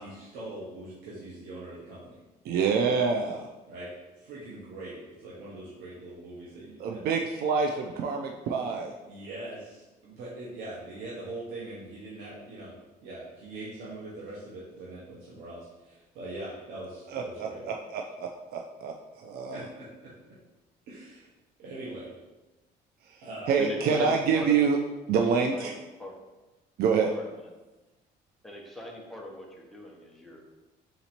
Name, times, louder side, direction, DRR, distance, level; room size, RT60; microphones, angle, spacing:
voice 1, 0.0-2.2 3.7-3.9 4.2-7.0 9.1-12.7 13.0-17.6 19.5-20.1 20.9-21.3 21.6-22.1 23.2-23.5, right 2 dB, 85° right, -7 dB, 1.0 m, -42 dB
voice 2, 2.5-3.5 6.8-8.9 17.1-19.7 23.1-24.8 25.1-25.7 26.8-27.1, right 5 dB, 65° right, 2 dB, 0.4 m, -27 dB
voice 3, 23.6-24.6 25.5-26.1 27.1-27.5 28.4-30.5, left 1 dB, ahead, -1 dB, 0.8 m, -38 dB
3.9 x 2.9 x 4.3 m, 1.1 s
cardioid pair, 110°, 17 cm